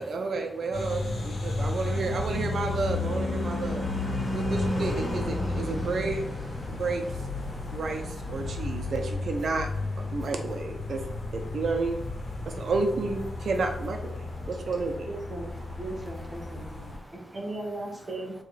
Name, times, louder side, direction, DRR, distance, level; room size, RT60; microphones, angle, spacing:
voice 1, 0.0-3.9 4.3-6.2 6.7-7.0 7.7-9.7 10.0-11.0 11.3-12.0 12.5-15.1, right 3 dB, 70° right, 4 dB, 0.9 m, -31 dB
sound 1, 0.7-17.0, left 3 dB, 70° left, 1.5 m, -34 dB
Car passing by / Truck / Engine, 1.4-10.1, left 1 dB, 15° left, 2.2 m, -35 dB
voice 2, 1.4-1.9 3.5-4.4 6.6-6.9 7.4-8.9 10.2-10.3 12.4-12.6 14.3-14.5 16.4-17.4, equal, 5° right, 5 dB, 0.7 m, -49 dB
voice 3, 15.1-15.5 15.8-16.9 17.3-18.3, right 2 dB, 35° right, -2 dB, 2.0 m, -37 dB
7.1 x 3.3 x 4.2 m, 0.80 s
wide cardioid pair, 135°, 0 cm